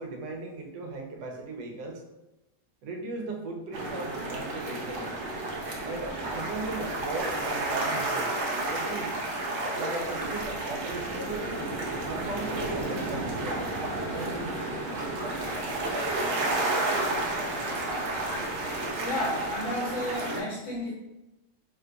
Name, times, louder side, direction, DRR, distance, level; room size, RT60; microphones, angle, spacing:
voice 1, 0.0-2.0 2.8-5.1 5.8-8.3 8.7-9.1 9.8-11.5 12.0-13.7 14.1-14.6, right 2 dB, 90° right, 2 dB, 1.3 m, -37 dB
sound 1, 3.7-20.4, right 2 dB, 65° right, 0.8 m, -31 dB
voice 2, 19.0-20.9, left 1 dB, 55° left, -5 dB, 1.0 m, -32 dB
3.0 x 2.2 x 3.8 m, 0.98 s
omnidirectional pair, 1.8 m